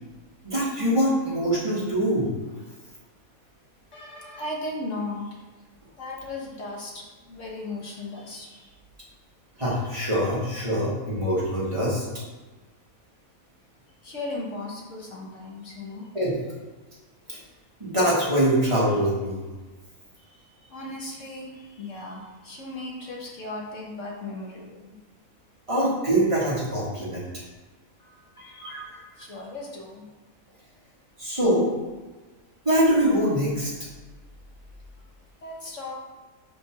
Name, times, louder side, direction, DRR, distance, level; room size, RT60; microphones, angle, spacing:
voice 1, 0.4-2.3 9.6-12.0 16.1-16.3 17.3-17.4 17.8-19.4 25.7-27.3 28.6-28.8 31.2-31.7 32.6-33.7, right 1 dB, 20° right, -7 dB, 1.7 m, -23 dB
voice 2, 3.9-5.4 6.0-8.7 14.0-16.1 20.2-25.0 28.0-28.8 29.2-30.0 35.4-36.0, left 2 dB, 60° left, -3 dB, 1.5 m, -37 dB
5.4 x 3.8 x 5.9 m, 1.3 s
omnidirectional pair, 1.5 m